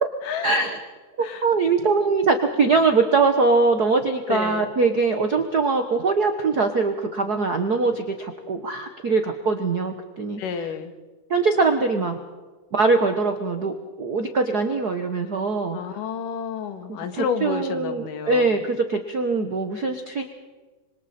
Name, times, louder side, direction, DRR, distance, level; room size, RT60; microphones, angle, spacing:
voice 1, 0.4-0.8 1.2-10.4 11.3-12.2 12.7-15.8 16.9-20.3, right 4 dB, 80° right, 5 dB, 0.8 m, -22 dB
voice 2, 4.3-4.7 10.4-11.0 15.7-18.6, left 6 dB, 85° left, 8 dB, 3.1 m, -30 dB
26.0 x 25.5 x 4.3 m, 1.3 s
omnidirectional pair, 3.8 m